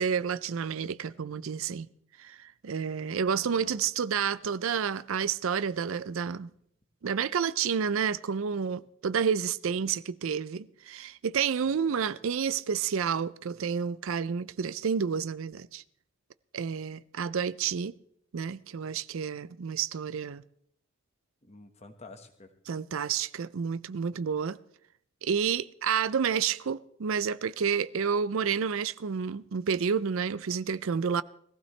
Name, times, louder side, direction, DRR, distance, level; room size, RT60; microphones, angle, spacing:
voice 1, 0.0-1.9 2.2-6.5 7.0-15.8 16.5-17.9 18.3-20.4 22.7-24.6 25.2-31.2, right 6 dB, 70° right, 0.5 m, -30 dB
voice 2, 3.3-3.8 11.6-12.1 21.4-22.5, left 3 dB, 30° left, 1.3 m, -51 dB
20.5 x 15.5 x 3.3 m
head